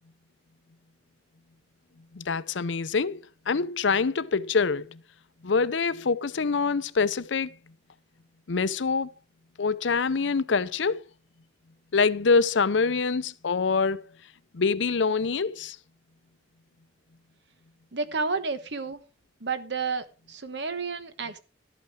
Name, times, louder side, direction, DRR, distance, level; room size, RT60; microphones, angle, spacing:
voice 1, 2.1-3.2 3.5-5.0 5.4-7.5 8.5-9.1 9.6-11.0 11.9-14.0 14.5-15.8, left 4 dB, 80° left, 0.6 m, -25 dB
voice 2, 17.9-19.0 19.4-21.4, right 4 dB, 65° right, 1.3 m, -31 dB
12.5 x 8.5 x 4.8 m
head